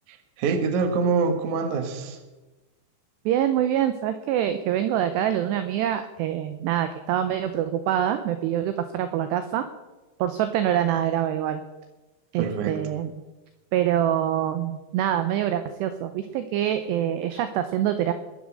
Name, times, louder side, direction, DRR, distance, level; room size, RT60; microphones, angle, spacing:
voice 1, 0.1-2.2 12.4-12.8, right 4 dB, 65° right, 6 dB, 2.0 m, -25 dB
voice 2, 3.3-9.6 10.2-11.6 12.3-13.1 13.7-18.1, right 11 dB, 80° right, 9 dB, 2.4 m, -25 dB
21.5 x 7.3 x 6.3 m, 1.1 s
omnidirectional pair, 5.6 m